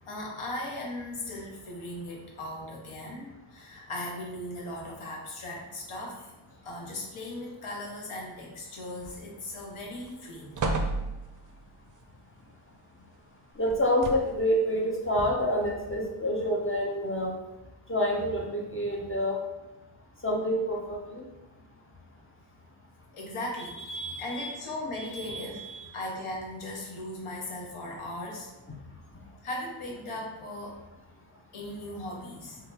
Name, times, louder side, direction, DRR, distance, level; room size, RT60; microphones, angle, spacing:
voice 1, 0.1-6.3 6.6-10.6 23.1-23.8 24.2-25.6 25.9-28.5 29.4-30.8 31.5-32.6, left 1 dB, 85° left, -1 dB, 1.0 m, -38 dB
sound 1, 9.0-9.5 9.9-10.1 10.6-11.6 13.7-14.5 15.3-15.4, right 3 dB, 40° right, 0.4 m, -32 dB
voice 2, 13.6-17.3 17.9-19.4 20.2-21.2 23.9-24.5 25.1-25.8, equal, 25° left, -2 dB, 0.5 m, -28 dB
3.5 x 2.3 x 2.8 m, 0.98 s
wide cardioid pair, 85°, 49 cm